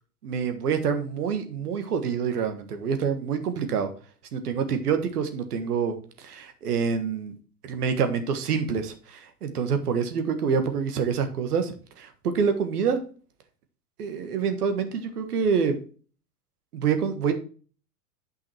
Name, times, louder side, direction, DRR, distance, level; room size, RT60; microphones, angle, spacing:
voice 1, 0.2-3.9 4.3-7.3 7.6-13.0 14.0-15.7 16.7-17.3, right 6 dB, 75° right, 8 dB, 1.6 m, -26 dB
8.0 x 5.8 x 4.4 m, 0.40 s
hypercardioid pair, 90°, 46 cm